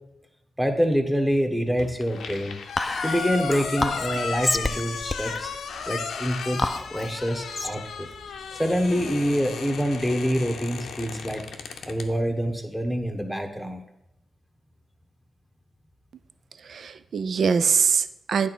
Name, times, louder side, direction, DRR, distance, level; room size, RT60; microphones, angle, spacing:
voice 1, 0.6-2.6 3.0-5.5 5.9-6.6 6.9-8.1 8.6-11.4 11.9-13.8, equal, 5° right, 4 dB, 1.2 m, -26 dB
sound 1, 1.8-12.1, left 5 dB, 80° left, 0.6 m, -34 dB
Whispering, 2.8-9.4, left 2 dB, 25° left, 0.4 m, -31 dB
voice 2, 16.6-18.5, right 6 dB, 70° right, 14 dB, 0.4 m, -23 dB
8.9 x 3.5 x 6.0 m, 0.89 s
supercardioid pair, 50°, 0 cm